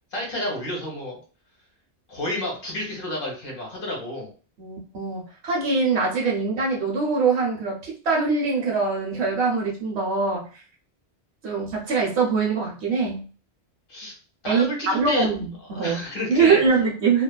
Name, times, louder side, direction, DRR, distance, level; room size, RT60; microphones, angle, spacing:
voice 1, 0.1-1.2 2.1-4.3 13.9-14.1 14.4-15.3 15.7-16.6, left 1 dB, 55° left, -1 dB, 1.1 m, -30 dB
voice 2, 4.6-10.5 11.4-13.2 14.5-16.0 16.3-17.2, right 4 dB, 75° right, -2 dB, 1.1 m, -23 dB
2.7 x 2.3 x 2.2 m, 0.38 s
omnidirectional pair, 1.1 m